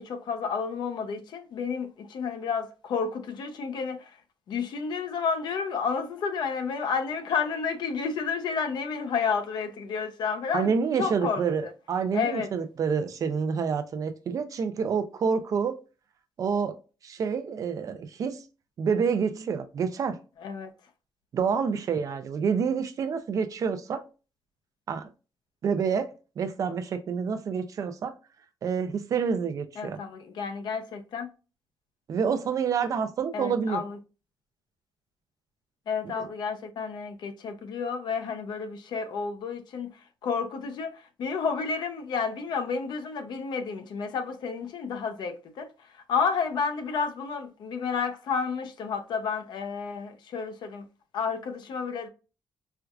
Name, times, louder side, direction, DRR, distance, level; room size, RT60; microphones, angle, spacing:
voice 1, 0.0-4.1 4.5-10.7 10.9-11.7 12.1-12.5 20.4-20.7 29.8-31.3 33.3-34.0 35.9-39.9 40.2-50.8 51.1-52.1, left 5 dB, 60° left, 0.6 m, -31 dB
voice 2, 10.5-15.8 16.4-16.7 17.0-18.4 18.8-20.2 21.3-24.0 24.9-25.1 25.6-28.1 28.6-30.0 32.1-33.8 36.2-36.3, right 6 dB, 45° right, 0.4 m, -28 dB
4.4 x 2.4 x 2.3 m
cardioid pair, 175°, 8 cm